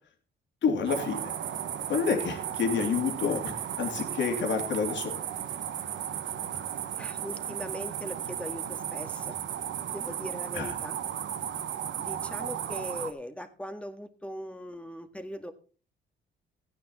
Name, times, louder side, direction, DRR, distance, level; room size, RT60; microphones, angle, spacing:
voice 1, 0.6-1.3 1.9-5.2 10.5-10.7, left 6 dB, 65° left, 4 dB, 3.0 m, -29 dB
sound 1, 0.9-13.1, right 10 dB, 70° right, 1.3 m, -35 dB
voice 2, 7.0-9.4 9.9-11.0 12.0-15.5, equal, 5° left, 8 dB, 1.8 m, -40 dB
14.5 x 9.8 x 4.2 m, 0.37 s
cardioid pair, 90°, 20 cm